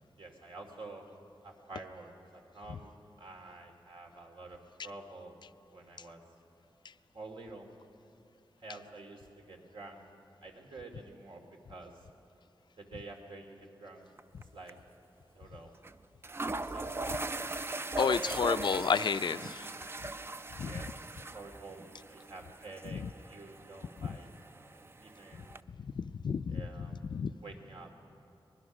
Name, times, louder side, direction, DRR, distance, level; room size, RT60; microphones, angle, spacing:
voice 1, 0.2-1.0 1.4-5.3 5.7-6.2 7.1-7.7 8.6-10.0 10.4-12.1 12.8-14.0 14.5-14.8 15.3-15.7 16.6-17.2 17.9-18.5 20.6-24.3 25.0-25.6 26.5-27.0 27.4-27.9, right 3 dB, 75° right, 2 dB, 2.6 m, -48 dB
sound 1, 14.2-14.4 14.7-14.8 15.8-15.9 16.2-25.6, right 2 dB, 25° right, 0.4 m, -40 dB
voice 2, 18.0-19.7 20.6-20.7 22.9-23.1 24.0-24.2 25.3-25.5 25.8-27.3, left 6 dB, 60° left, 13 dB, 0.4 m, -32 dB
23.5 x 20.5 x 6.2 m, 2.7 s
wide cardioid pair, 145°, 9 cm